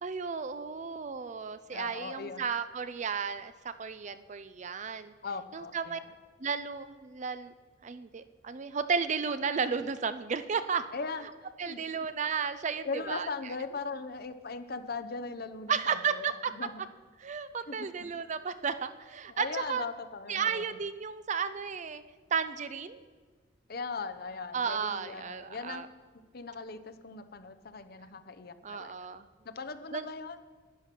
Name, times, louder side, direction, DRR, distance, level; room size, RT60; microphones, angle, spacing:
voice 1, 0.0-5.1 5.5-6.0 6.4-7.5 7.8-10.8 11.6-13.3 15.7-16.5 17.2-19.8 20.3-22.0 22.3-23.0 24.5-25.9 28.6-29.3 29.9-30.1, right 6 dB, 40° right, 12 dB, 0.5 m, -33 dB
voice 2, 1.7-2.4 5.2-6.1 10.9-11.3 11.6-11.8 12.8-16.7 17.7-17.9 19.3-20.8 23.7-25.9 26.3-28.9 29.4-30.4, left 4 dB, 55° left, 9 dB, 0.8 m, -39 dB
11.0 x 9.9 x 5.9 m, 1.4 s
head